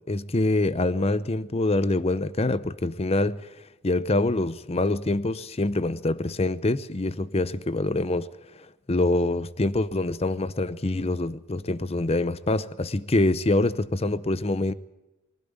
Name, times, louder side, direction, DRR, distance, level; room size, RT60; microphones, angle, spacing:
voice 1, 0.1-3.5 3.8-8.3 8.9-14.7, left 2 dB, 30° left, 0.7 m, -25 dB
23.0 x 12.5 x 9.6 m
head